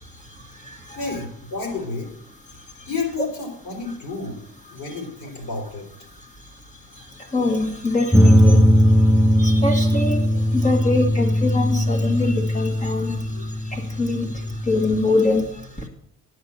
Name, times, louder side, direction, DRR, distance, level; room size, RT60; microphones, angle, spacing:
voice 1, 0.0-1.2 2.5-2.9 4.9-5.0 6.1-15.9, left 2 dB, 25° left, 3 dB, 1.6 m, -25 dB
voice 2, 1.0-2.1 2.9-4.4 4.7-5.8, left 4 dB, 65° left, 1 dB, 4.0 m, -30 dB
sound 1, 8.1-15.0, equal, ahead, 0.4 m, -19 dB
9.6 x 6.7 x 7.0 m, 0.70 s
cardioid pair, 130°, 31 cm